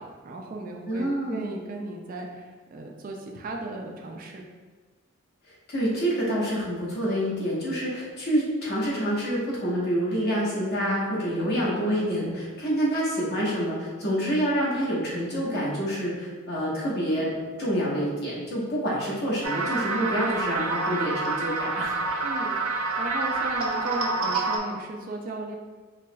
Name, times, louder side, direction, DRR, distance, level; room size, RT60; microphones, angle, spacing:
voice 1, 0.0-4.4 22.2-25.5, right 2 dB, 40° right, 1 dB, 0.4 m, -36 dB
voice 2, 0.9-1.5 5.7-21.9, equal, 50° left, -6 dB, 1.1 m, -27 dB
sound 1, 19.4-24.6, right 3 dB, 85° right, 0.7 m, -27 dB
4.6 x 2.9 x 2.2 m, 1.4 s
head